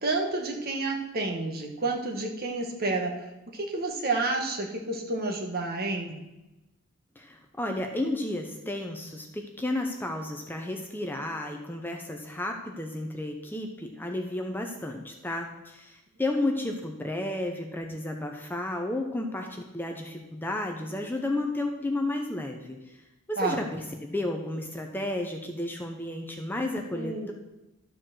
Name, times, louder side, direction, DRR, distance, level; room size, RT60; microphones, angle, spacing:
voice 1, 0.0-3.1 3.5-6.2 23.4-23.6 26.9-27.3, right 3 dB, 45° right, 1 dB, 1.5 m, -30 dB
voice 2, 7.2-22.8 23.3-27.3, left 1 dB, 10° left, 3 dB, 0.7 m, -32 dB
12.5 x 4.6 x 6.3 m, 1.0 s
head